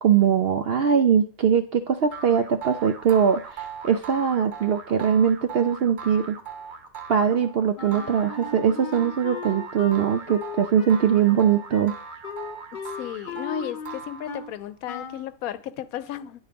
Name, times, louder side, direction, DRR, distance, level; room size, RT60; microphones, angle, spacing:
voice 1, 0.0-6.4 7.1-11.9, right 7 dB, 65° right, 0.6 m, -21 dB
sound 1, 2.1-14.6, right 6 dB, 40° right, 1.0 m, -40 dB
Wind instrument woodwind instrument, 7.8-14.5 14.9-15.3, left 6 dB, 50° left, 0.7 m, -37 dB
Wind instrument woodwind instrument 2, 8.2-13.1, right 6 dB, 85° right, 1.7 m, -48 dB
voice 2, 13.0-16.4, left 10 dB, 80° left, 1.0 m, -34 dB
9.6 x 4.4 x 5.1 m
omnidirectional pair, 1.5 m